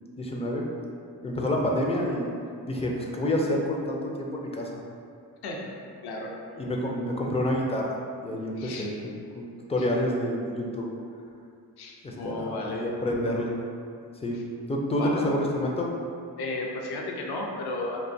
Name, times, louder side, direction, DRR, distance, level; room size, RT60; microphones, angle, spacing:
voice 1, 0.2-0.7 1.2-2.3 2.7-4.7 6.6-8.0 8.2-10.9 12.0-13.6 14.2-14.4 14.7-15.9, left 1 dB, 15° left, -1 dB, 0.4 m, -28 dB
voice 2, 5.4-5.7 6.0-6.3 8.6-8.9 9.8-9.9 11.8-12.9 14.3-14.4 14.9-15.4 16.4-18.0, left 2 dB, 65° left, -1 dB, 0.6 m, -34 dB
2.5 x 2.2 x 2.6 m, 2.4 s
supercardioid pair, 45°, 41 cm